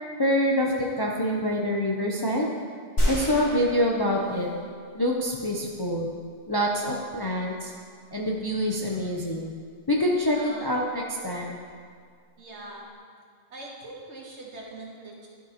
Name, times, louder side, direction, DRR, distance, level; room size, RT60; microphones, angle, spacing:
voice 1, 0.2-2.5 3.0-4.5 4.9-6.1 6.5-7.7 8.1-9.5 9.9-11.6, equal, 30° left, -2 dB, 0.4 m, -26 dB
sound 1, 3.0-4.7 5.2-5.3, equal, 85° left, 2.0 m, -29 dB
voice 2, 10.3-10.9 12.4-12.9 13.5-15.3, right 2 dB, 75° right, -2 dB, 1.5 m, -42 dB
11.5 x 5.5 x 2.9 m, 2.1 s
omnidirectional pair, 1.2 m